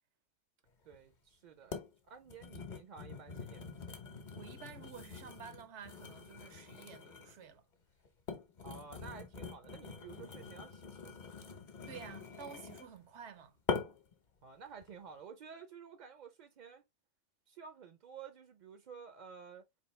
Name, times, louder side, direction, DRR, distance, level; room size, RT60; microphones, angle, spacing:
voice 1, 0.8-3.9 8.6-11.3 14.4-16.8 17.5-19.7, right 6 dB, 55° right, 0.5 m, -52 dB
sound 1, 0.9-1.0 1.7-1.9 2.3-7.4 8.0-13.0 13.7-14.1 14.7-14.9, left 5 dB, 45° left, 0.9 m, -44 dB
voice 2, 4.3-7.6 11.9-13.6, right 7 dB, 80° right, 1.0 m, -51 dB
4.4 x 2.6 x 3.1 m
omnidirectional pair, 1.2 m